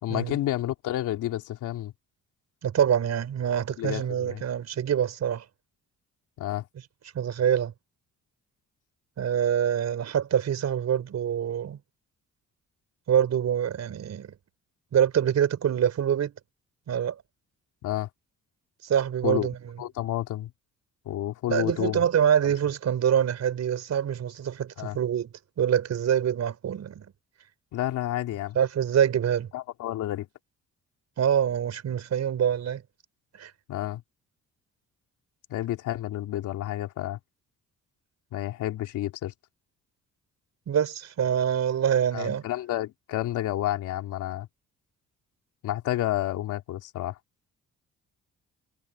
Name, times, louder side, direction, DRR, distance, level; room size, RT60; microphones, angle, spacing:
voice 1, 0.0-1.9 3.8-4.4 6.4-6.7 17.8-18.1 19.2-19.5 19.8-20.5 21.1-22.0 22.4-22.5 24.8-25.0 27.7-28.6 29.5-30.3 33.7-34.0 35.5-37.2 38.3-39.3 42.1-44.5 45.6-47.2, left 14 dB, 85° left, 3.4 m, -30 dB
voice 2, 2.6-5.5 7.1-7.7 9.2-11.8 13.1-14.4 14.9-16.3 16.9-17.2 18.8-19.7 21.5-25.3 25.6-27.1 28.6-29.5 31.2-32.8 33.3-33.5 40.7-42.4, right 9 dB, 60° right, 5.2 m, -25 dB
cardioid pair, 90°, 30 cm